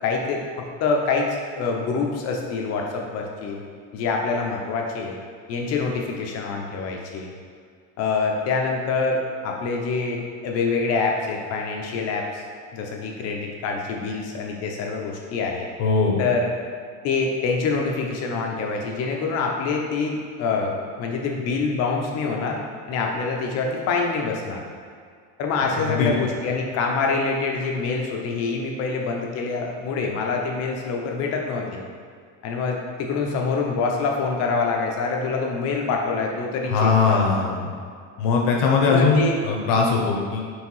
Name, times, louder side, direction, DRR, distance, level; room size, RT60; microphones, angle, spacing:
voice 1, 0.0-3.6 3.9-5.2 5.5-7.3 8.0-12.4 12.7-15.7 16.2-16.5 17.0-22.6 22.9-24.6 25.4-31.8 32.4-37.2 38.9-39.4, left 4 dB, 45° left, 1 dB, 0.8 m, -25 dB
voice 2, 15.8-16.2 25.8-26.1 36.7-37.7 38.2-40.4, left 4 dB, 65° left, 0 dB, 1.2 m, -20 dB
4.8 x 3.6 x 5.5 m, 2.2 s
cardioid pair, 170°, 36 cm